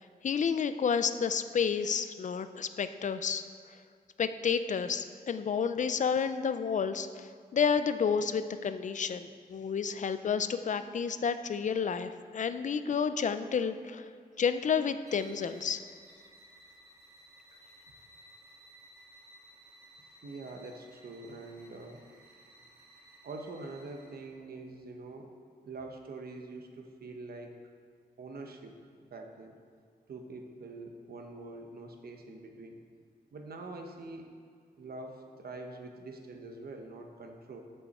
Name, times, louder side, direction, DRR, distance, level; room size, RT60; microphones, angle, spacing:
voice 1, 0.2-3.5 4.2-14.1 14.4-15.8, left 6 dB, 50° left, 11 dB, 0.4 m, -30 dB
sound 1, 15.0-24.4, right 1 dB, 20° right, 2.3 m, -57 dB
voice 2, 20.2-22.0 23.2-25.3 25.6-27.5 28.2-28.7 29.0-29.5 30.1-32.8 33.3-34.4 34.8-37.6, right 2 dB, 70° right, 3 dB, 1.0 m, -44 dB
13.5 x 5.6 x 4.2 m, 2.1 s
wide cardioid pair, 170°, 16 cm